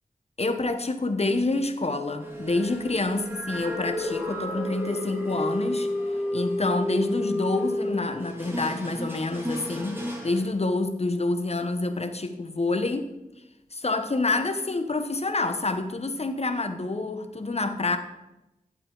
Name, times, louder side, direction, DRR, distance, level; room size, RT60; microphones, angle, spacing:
voice 1, 0.4-5.9 6.3-13.1 13.7-18.0, left 2 dB, 45° left, 8 dB, 0.9 m, -27 dB
sound 1, 2.2-10.5, left 1 dB, 15° right, 2.4 m, -31 dB
11.5 x 7.7 x 3.8 m, 0.97 s
wide cardioid pair, 50°, 15 cm